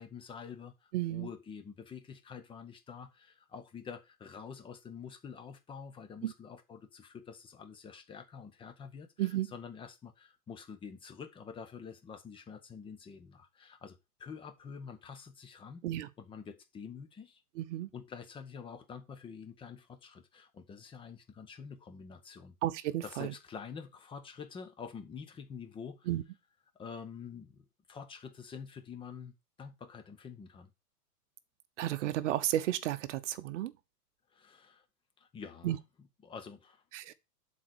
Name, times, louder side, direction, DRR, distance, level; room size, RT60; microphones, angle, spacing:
voice 1, 0.0-15.8 16.2-17.4 17.9-22.5 23.0-26.1 26.7-30.7 34.3-34.8 35.2-36.8, left 6 dB, 10° left, 0.9 m, -47 dB
voice 2, 0.9-1.3 6.2-6.3 9.2-9.5 15.8-16.1 17.6-17.9 22.6-23.3 26.1-26.2 31.8-33.7 35.6-35.8 36.9-37.1, right 13 dB, 50° right, 0.9 m, -32 dB
7.5 x 4.3 x 6.3 m
hypercardioid pair, 130°, 47 cm